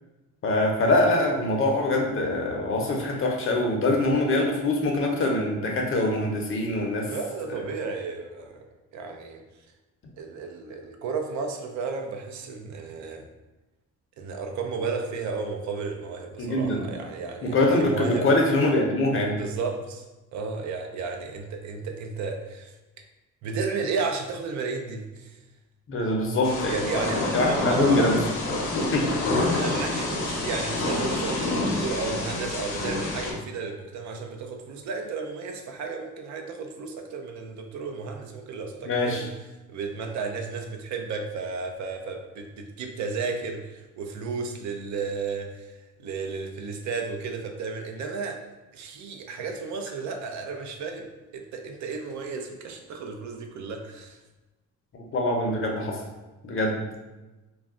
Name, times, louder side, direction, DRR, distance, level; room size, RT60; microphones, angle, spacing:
voice 1, 0.4-7.1 16.4-16.8 17.4-19.3 25.9-26.8 27.3-28.2 28.8-29.1 38.9-39.2 55.1-56.0 56.4-56.8, left 2 dB, 45° left, 0 dB, 0.6 m, -24 dB
voice 2, 7.1-8.6 8.9-9.4 10.2-13.3 14.2-18.3 19.3-20.0 20.3-22.7 23.4-25.4 26.7-28.1 29.3-39.3 39.7-45.7 46.0-48.4 48.7-54.2, right 4 dB, 70° right, 4 dB, 0.5 m, -33 dB
Thunder / Rain, 26.4-33.3, left 2 dB, 85° left, 0.7 m, -27 dB
2.3 x 2.1 x 3.6 m, 1.1 s
cardioid pair, 90°, 30 cm